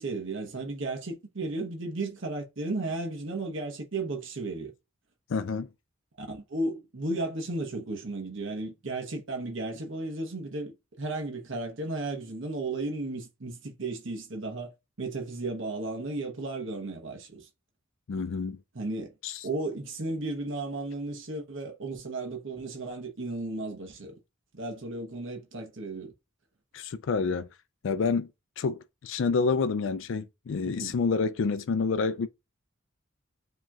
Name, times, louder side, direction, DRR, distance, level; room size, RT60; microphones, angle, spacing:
voice 1, 0.0-4.7 6.2-14.7 15.0-17.5 18.7-19.1 19.4-24.1 24.5-26.1 30.6-30.9, right 2 dB, 65° right, 1.0 m, -34 dB
voice 2, 5.3-5.7 18.1-18.6 19.2-19.3 26.7-27.5 27.8-28.3 28.6-32.3, left 4 dB, 65° left, 0.4 m, -28 dB
7.3 x 3.0 x 2.3 m
head